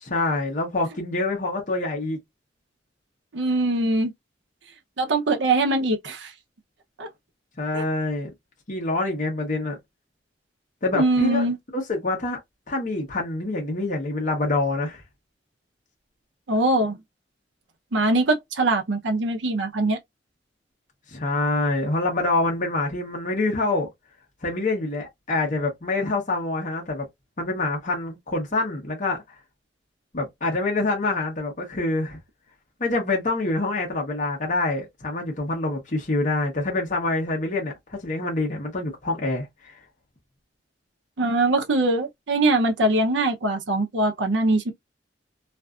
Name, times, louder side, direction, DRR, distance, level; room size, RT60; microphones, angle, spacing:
voice 1, 0.0-2.2 7.6-8.3 8.7-9.8 10.8-11.5 11.7-12.4 12.7-15.0 21.1-23.9 24.4-27.1 27.4-29.4 30.1-32.2 32.8-39.8, left 2 dB, 45° left, 0.9 m, -26 dB
voice 2, 3.3-4.1 5.0-6.3 7.0-7.1 7.7-7.8 10.9-11.6 16.5-17.0 17.9-20.0 41.2-44.7, right 2 dB, 75° right, 0.6 m, -22 dB
2.5 x 2.4 x 2.3 m
head